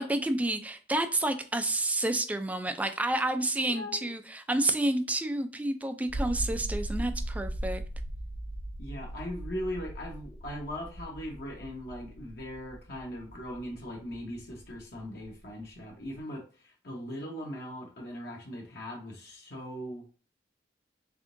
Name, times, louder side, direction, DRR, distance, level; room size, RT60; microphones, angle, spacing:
voice 1, 0.0-7.8, right 1 dB, 10° right, 8 dB, 0.3 m, -29 dB
voice 2, 3.7-4.1 8.8-16.4 16.8-20.0, equal, 60° left, -2 dB, 0.9 m, -39 dB
sound 1, 6.1-16.2, right 1 dB, 50° right, 0.6 m, -38 dB
3.6 x 3.5 x 2.6 m, 0.38 s
head